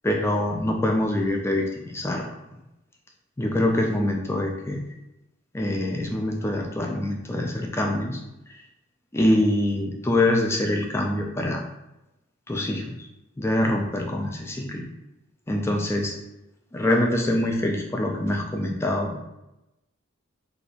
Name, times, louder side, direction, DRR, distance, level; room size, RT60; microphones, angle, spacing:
voice 1, 0.0-2.3 3.4-4.8 5.5-8.2 9.1-11.6 12.5-13.1 13.4-14.8 15.5-16.1 16.7-19.2, left 1 dB, 10° left, 1 dB, 0.3 m, -24 dB
2.8 x 2.4 x 4.0 m, 0.92 s
head